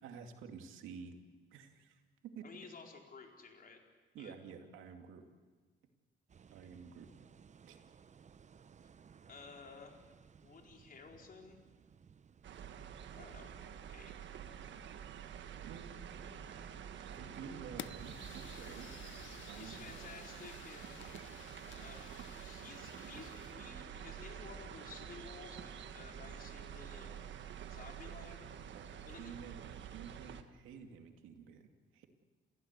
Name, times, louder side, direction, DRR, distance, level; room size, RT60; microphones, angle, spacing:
voice 1, 0.0-1.2 1.5-2.5 4.1-5.3 6.5-7.1 7.6-7.8 15.6-16.5 17.0-18.9 19.4-19.9 28.7-32.0, right 6 dB, 90° right, 4 dB, 2.4 m, -51 dB
voice 2, 2.4-3.8 4.2-4.3 9.3-10.0 10.4-11.6 13.1-14.1 14.4-14.6 16.6-16.7 19.6-21.2 21.7-28.5 29.0-29.3, left 5 dB, 45° left, 1 dB, 4.6 m, -54 dB
sound 1, 6.3-13.6, right 6 dB, 35° right, 0.7 m, -61 dB
sound 2, 12.4-30.4, right 8 dB, 70° right, 1.5 m, -48 dB
Fire, 17.8-23.7, left 12 dB, 70° left, 0.6 m, -53 dB
29.5 x 15.5 x 8.2 m, 1.4 s
cardioid pair, 90°, 20 cm